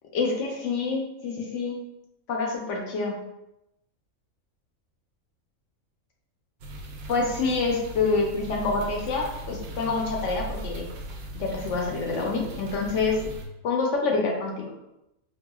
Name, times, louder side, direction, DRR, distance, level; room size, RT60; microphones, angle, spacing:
voice 1, 0.1-1.8 2.3-3.1 7.1-10.9 11.3-13.2 13.6-14.7, left 4 dB, 65° left, 0 dB, 0.9 m, -27 dB
sound 1, 6.6-13.5, right 2 dB, 65° right, 0.7 m, -38 dB
4.7 x 2.3 x 2.3 m, 0.88 s
omnidirectional pair, 1.4 m